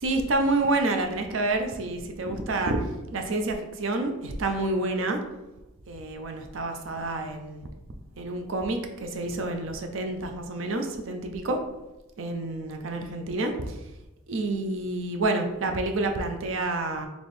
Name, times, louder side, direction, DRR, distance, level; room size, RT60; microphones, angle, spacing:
voice 1, 0.0-2.8 3.1-5.2 5.9-7.7 8.2-11.6 12.2-13.5 14.3-17.1, right 2 dB, 70° right, 5 dB, 0.5 m, -28 dB
4.2 x 3.0 x 3.3 m, 0.99 s
head